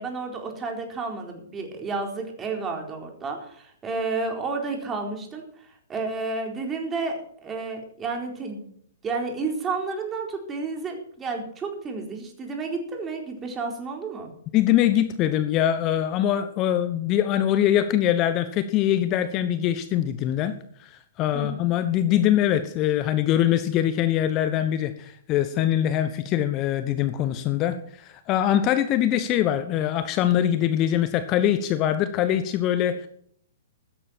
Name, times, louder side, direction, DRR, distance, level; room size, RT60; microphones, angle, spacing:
voice 1, 0.0-8.7 9.0-14.3 21.3-21.7, right 4 dB, 15° right, 2 dB, 4.3 m, -31 dB
voice 2, 14.5-20.5 20.8-33.1, left 11 dB, 30° left, 11 dB, 1.0 m, -23 dB
15.5 x 13.5 x 4.5 m, 0.64 s
figure-of-eight pair, 115°, 0 cm